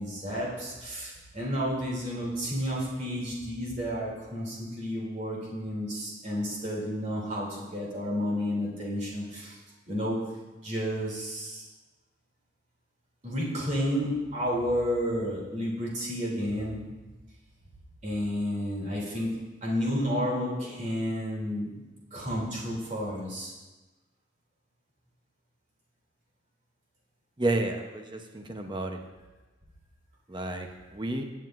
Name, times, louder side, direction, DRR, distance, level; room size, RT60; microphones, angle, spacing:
voice 1, 0.0-9.6 9.9-10.2 10.6-11.6 13.2-16.8 18.0-19.3 19.6-21.7 22.1-23.5, equal, 40° right, -4 dB, 2.8 m, -31 dB
voice 2, 27.4-29.0 30.3-31.2, right 2 dB, 25° right, 4 dB, 0.8 m, -31 dB
17.0 x 7.6 x 2.5 m, 1.2 s
head